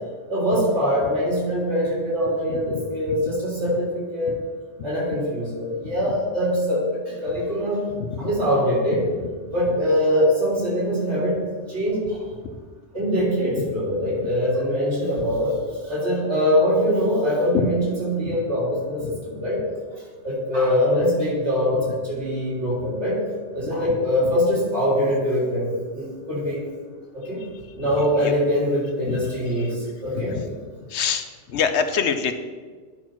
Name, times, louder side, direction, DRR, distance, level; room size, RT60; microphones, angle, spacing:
voice 1, 0.3-4.3 4.8-7.9 8.2-9.1 9.5-12.3 12.9-15.6 15.8-19.6 19.9-23.2 23.5-26.7 27.1-27.4 27.7-30.4, equal, 90° right, -7 dB, 3.6 m, -23 dB
voice 2, 8.0-8.3 28.2-28.3 29.0-29.2 30.1-30.4 30.9-32.3, left 6 dB, 80° left, 9 dB, 1.0 m, -25 dB
10.0 x 4.5 x 5.9 m, 1.5 s
omnidirectional pair, 1.1 m